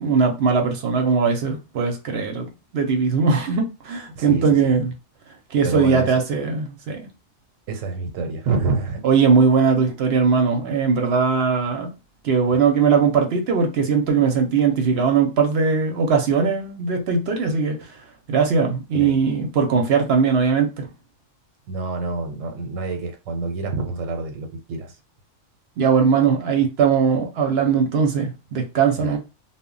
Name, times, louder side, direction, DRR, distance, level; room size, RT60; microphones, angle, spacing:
voice 1, 0.0-2.5 2.7-4.9 5.5-7.1 9.0-11.9 12.2-17.8 18.3-20.9 25.8-29.2, right 5 dB, 60° right, 0.8 m, -20 dB
voice 2, 4.1-4.7 5.6-6.2 7.7-9.0 18.9-19.2 21.7-25.0 29.0-29.2, right 3 dB, 90° right, 1.0 m, -27 dB
2.1 x 2.1 x 3.7 m
omnidirectional pair, 1.3 m